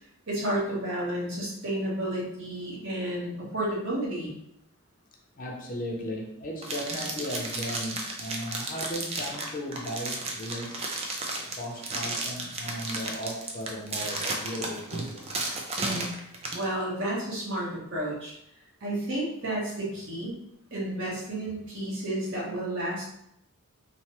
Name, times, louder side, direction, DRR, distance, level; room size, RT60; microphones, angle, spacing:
voice 1, 0.3-4.4 15.8-16.1 16.5-18.4 18.8-20.4 20.7-23.1, right 1 dB, 60° right, -5 dB, 1.0 m, -31 dB
voice 2, 5.3-10.9 11.6-15.4, equal, 40° left, 0 dB, 0.5 m, -36 dB
sound 1, 6.6-16.6, right 2 dB, 30° right, 0.3 m, -33 dB
3.1 x 2.0 x 2.8 m, 0.77 s
head